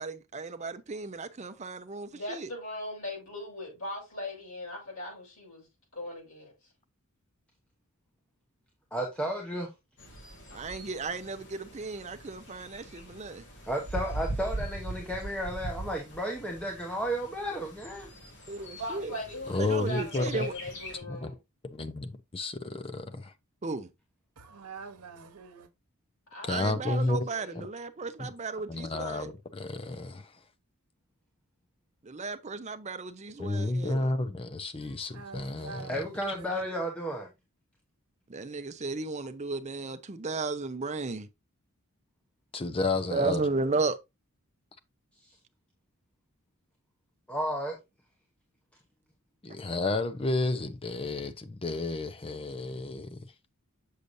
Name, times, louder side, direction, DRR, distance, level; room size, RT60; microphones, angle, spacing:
voice 1, 0.0-2.5 10.5-13.4 18.5-19.1 19.6-20.5 23.6-23.9 26.5-29.3 32.0-34.1 38.3-41.3 43.1-44.0, right 3 dB, 30° right, 0.6 m, -34 dB
voice 2, 2.1-5.7 5.9-6.5 18.6-21.4 26.3-27.6, left 1 dB, 75° left, 5.1 m, -39 dB
voice 3, 8.9-9.7 13.7-18.1 35.9-37.3 47.3-47.8, equal, 5° left, 1.0 m, -33 dB
Bird, 10.0-21.0, right 1 dB, 55° left, 2.6 m, -41 dB
voice 4, 19.5-20.5 21.1-21.3 21.6-23.3 26.4-27.3 27.6-27.7 28.2-28.3 28.7-30.4 33.4-36.0 42.5-43.4 49.4-53.2, left 2 dB, 25° left, 0.6 m, -31 dB
voice 5, 24.4-25.7 35.1-36.4, right 5 dB, 90° right, 1.0 m, -45 dB
6.7 x 6.5 x 2.6 m
head